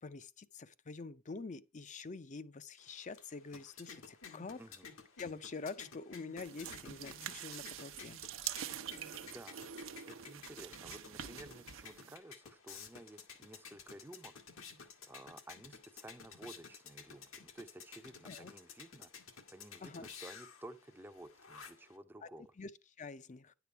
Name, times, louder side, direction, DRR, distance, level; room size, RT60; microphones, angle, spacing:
voice 1, 0.0-4.6 5.2-8.2 18.3-18.5 19.8-20.1 22.2-22.3 22.6-22.7 23.0-23.5, left 4 dB, 35° left, 0.5 m, -46 dB
sound 1, 2.8-22.0, left 5 dB, 80° left, 1.6 m, -54 dB
voice 2, 4.6-4.9 9.2-14.4 15.0-22.5, right 1 dB, 10° right, 0.6 m, -54 dB
sound 2, 6.4-12.2, right 9 dB, 80° right, 0.8 m, -45 dB
10.5 x 6.9 x 4.5 m
head